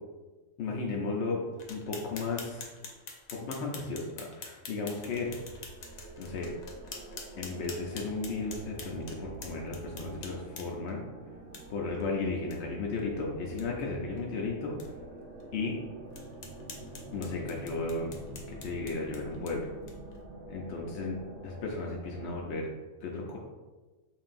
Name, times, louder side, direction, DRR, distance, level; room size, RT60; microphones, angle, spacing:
voice 1, 0.6-1.4 1.7-2.7 3.3-5.3 6.2-6.5 7.4-11.0 11.7-14.8 15.5-15.8 17.1-19.7 20.5-22.7 23.0-23.4, left 3 dB, 65° left, -2 dB, 0.7 m, -34 dB
sound 1, 1.6-10.9 11.5-11.6 12.0-12.1 12.5-12.6 12.9-13.0 13.4-13.7 14.2-14.3 14.8-14.9 15.4-15.5 16.1-20.2, left 4 dB, 80° left, 1.1 m, -47 dB
sound 2, 4.5-22.5, right 2 dB, 60° right, 0.9 m, -47 dB
5.4 x 2.6 x 2.5 m, 1.2 s
omnidirectional pair, 1.5 m